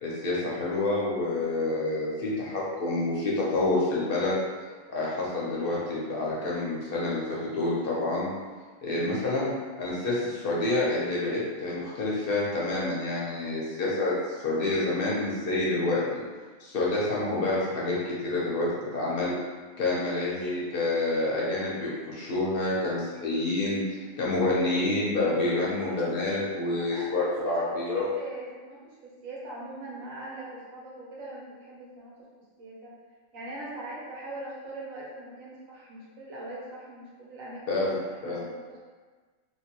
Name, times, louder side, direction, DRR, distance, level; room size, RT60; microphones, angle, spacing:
voice 1, 0.0-4.4 4.9-8.3 8.8-9.5 9.8-16.2 16.6-18.7 18.9-19.3 19.8-28.1 37.7-38.4, left 2 dB, 55° left, -6 dB, 0.7 m, -28 dB
voice 2, 19.8-20.1 25.5-26.2 26.8-32.3 32.6-32.9 33.3-37.8 38.2-38.8, right 1 dB, 85° right, -5 dB, 1.2 m, -42 dB
2.8 x 2.2 x 2.8 m, 1.4 s
omnidirectional pair, 1.4 m